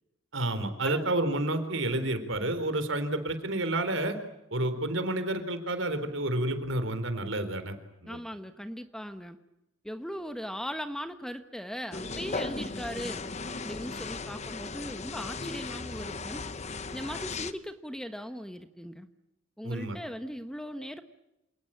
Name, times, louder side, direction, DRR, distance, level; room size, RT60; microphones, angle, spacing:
voice 1, 0.3-4.2 4.5-7.7 8.0-8.2 19.6-20.0, right 1 dB, 65° right, 9 dB, 3.8 m, -30 dB
voice 2, 8.1-9.4 9.8-13.3 13.6-16.4 16.9-19.1 19.6-21.0, equal, 5° left, 8 dB, 1.1 m, -39 dB
sound 1, 11.9-17.5, left 3 dB, 30° left, 1.0 m, -37 dB
28.0 x 19.0 x 8.7 m, 0.90 s
head